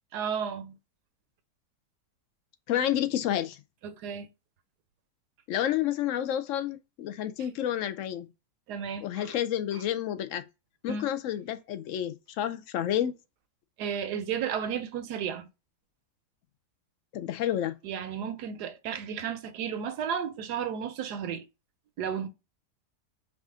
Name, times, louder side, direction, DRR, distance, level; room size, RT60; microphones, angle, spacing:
voice 1, 0.1-0.8 3.8-4.3 8.7-9.3 10.9-11.1 13.8-15.5 17.8-21.4 22.0-22.3, right 7 dB, 80° right, 1.2 m, -33 dB
voice 2, 2.7-3.6 5.5-8.3 9.0-10.5 10.8-13.1 17.1-17.8, left 11 dB, 70° left, 0.7 m, -30 dB
4.8 x 2.5 x 3.6 m
omnidirectional pair, 1.7 m